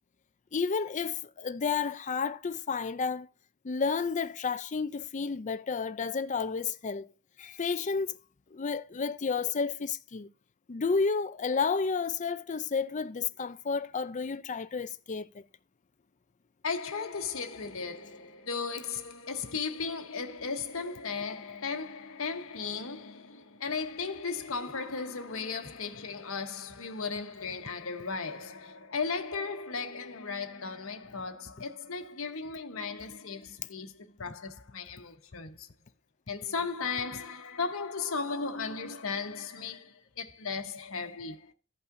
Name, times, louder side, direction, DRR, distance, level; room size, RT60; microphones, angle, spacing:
voice 1, 0.5-3.3 3.6-7.1 7.4-8.2 8.5-10.3 10.7-15.4, left 5 dB, 35° left, 0.5 m, -31 dB
voice 2, 16.6-35.7 36.3-41.5, left 5 dB, 85° left, 1.2 m, -36 dB
16.0 x 5.5 x 2.7 m
head